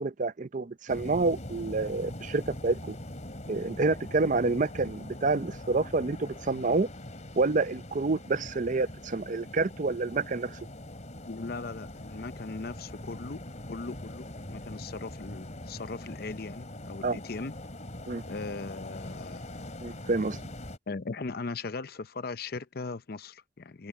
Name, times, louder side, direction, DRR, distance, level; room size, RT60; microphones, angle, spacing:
voice 1, 0.0-3.0 3.5-6.9 7.4-10.6 17.0-17.2 18.1-18.2 19.8-20.4, right 3 dB, 45° right, 0.6 m, -28 dB
sound 1, 0.9-20.8, left 1 dB, 45° left, 3.0 m, -42 dB
voice 2, 11.2-17.5 18.3-19.6 20.9-23.9, left 3 dB, 60° left, 0.7 m, -39 dB
head